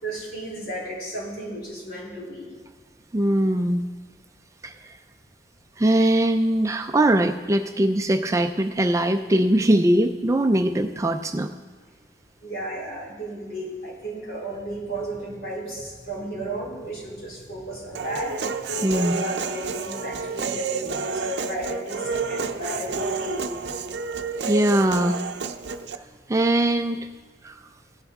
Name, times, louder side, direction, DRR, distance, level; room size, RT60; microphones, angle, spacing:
voice 1, 0.0-2.5 12.4-18.5 18.8-23.4 24.2-24.7, right 1 dB, 55° left, -4 dB, 3.5 m, -34 dB
voice 2, 3.1-3.8 4.6-4.7 5.8-11.5 18.8-19.1 24.5-25.2 26.3-27.0 27.4-27.6, right 1 dB, 15° right, 6 dB, 0.4 m, -21 dB
Human voice, 17.9-26.0, right 5 dB, 65° right, 0.6 m, -30 dB
16.5 x 10.5 x 3.6 m, 1.3 s
head